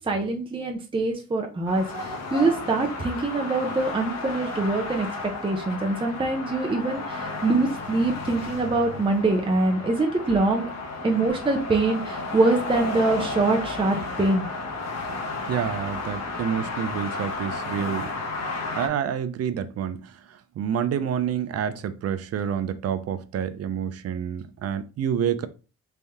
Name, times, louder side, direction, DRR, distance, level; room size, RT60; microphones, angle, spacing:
voice 1, 0.1-5.1 5.4-10.7 11.0-14.5, right 2 dB, 15° right, 0.7 m, -24 dB
sound 1, 1.7-18.9, left 3 dB, 60° left, 1.2 m, -33 dB
voice 2, 15.5-18.1 18.7-25.5, right 8 dB, 55° right, 0.5 m, -28 dB
3.4 x 2.7 x 3.5 m
cardioid pair, 90°, 30 cm